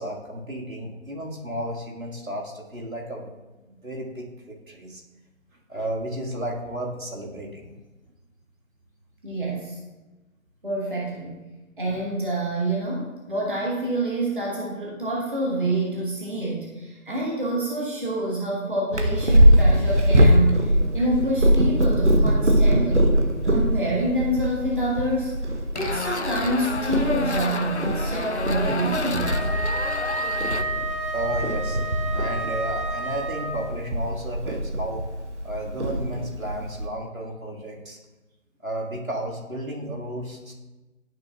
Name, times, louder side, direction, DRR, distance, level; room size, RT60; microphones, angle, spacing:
voice 1, 0.0-3.3 3.7-5.0 5.7-7.7 31.1-35.0 35.4-38.0 38.6-40.5, right 1 dB, 75° right, -2 dB, 1.9 m, -33 dB
voice 2, 9.2-9.8 10.6-11.4 11.8-25.3 25.7-29.5, right 1 dB, 40° right, -4 dB, 1.4 m, -27 dB
Purr, 18.9-36.9, equal, 55° right, 1.0 m, -22 dB
sound 1, 25.7-30.6, left 3 dB, 55° left, 0.5 m, -31 dB
Wind instrument woodwind instrument, 29.2-33.8, right 1 dB, 35° left, 1.0 m, -30 dB
12.0 x 5.6 x 2.3 m, 1.1 s
figure-of-eight pair, 175°, 41 cm